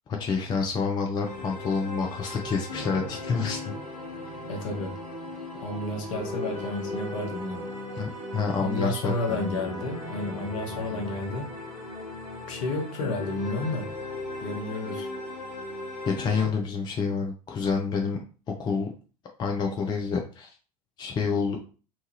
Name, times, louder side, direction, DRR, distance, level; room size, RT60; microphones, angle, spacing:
voice 1, 0.2-3.7 8.0-9.6 10.9-11.0 16.0-18.2 18.6-18.9 19.4-20.5 21.0-21.6, left 5 dB, 25° left, 2 dB, 0.5 m, -28 dB
sound 1, 1.2-16.5, left 2 dB, 85° left, 0.9 m, -37 dB
voice 2, 4.5-5.0 5.6-7.7 8.6-11.5 12.5-13.9 14.4-15.1, left 2 dB, 55° left, 2 dB, 0.8 m, -31 dB
3.0 x 2.2 x 3.0 m, 0.37 s
figure-of-eight pair, 75°, 19 cm